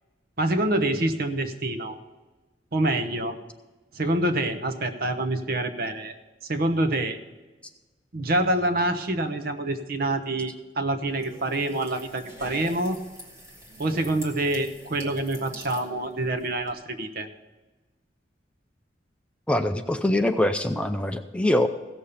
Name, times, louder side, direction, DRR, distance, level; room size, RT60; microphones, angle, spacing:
voice 1, 0.4-2.0 2.7-3.4 3.9-6.1 6.5-7.2 8.1-13.0 13.8-17.3, right 1 dB, 55° right, 7 dB, 1.0 m, -26 dB
sound 1, 11.1-16.7, equal, 15° right, 2.4 m, -45 dB
voice 2, 19.5-21.7, left 1 dB, 5° left, 7 dB, 0.5 m, -23 dB
16.5 x 6.9 x 5.6 m, 1.2 s
head